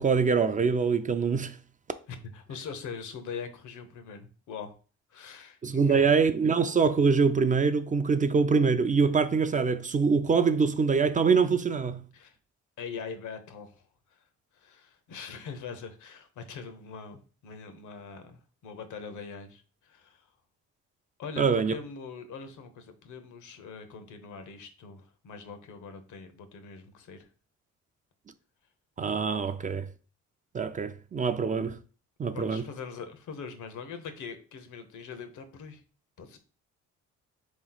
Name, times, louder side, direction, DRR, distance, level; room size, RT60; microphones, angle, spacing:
voice 1, 0.0-1.6 5.6-12.0 21.4-21.7 29.0-29.9 30.5-31.8 32.2-32.7, right 5 dB, 25° right, 0.4 m, -24 dB
voice 2, 2.1-4.7 5.1-6.0 12.1-12.4 12.8-13.8 14.1-14.2 14.5-20.3 21.2-27.3 32.3-35.8 36.2-36.4, left 5 dB, 80° left, 0.9 m, -42 dB
3.9 x 3.1 x 3.9 m
cardioid pair, 90°, 30 cm